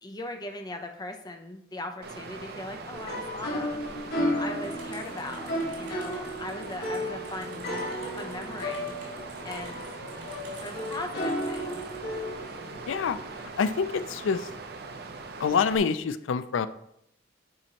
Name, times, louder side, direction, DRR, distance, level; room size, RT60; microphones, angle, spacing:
voice 1, 0.0-7.8 8.2-9.0 9.4-9.8 10.6-11.8, left 1 dB, 20° left, 4 dB, 0.7 m, -39 dB
Water, 2.0-15.8, right 3 dB, 55° right, 0.7 m, -41 dB
sound 1, 2.9-13.6, equal, 55° left, 1.4 m, -34 dB
sound 2, 4.6-12.0, right 3 dB, 85° right, 2.5 m, -52 dB
voice 2, 12.9-13.2 13.6-14.5 15.4-16.7, left 5 dB, 90° left, 13 dB, 0.4 m, -26 dB
8.9 x 4.3 x 2.9 m, 0.75 s
head